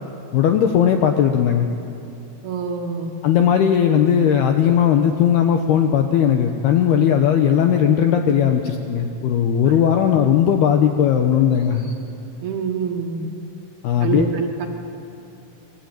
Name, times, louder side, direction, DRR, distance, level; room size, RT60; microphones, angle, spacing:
voice 1, 0.3-1.7 3.2-11.9 13.8-14.3, left 8 dB, 75° left, 5 dB, 2.4 m, -17 dB
voice 2, 2.4-3.1 12.4-13.3 14.0-14.7, right 6 dB, 60° right, 3 dB, 3.0 m, -25 dB
28.0 x 22.0 x 9.1 m, 2.8 s
omnidirectional pair, 5.9 m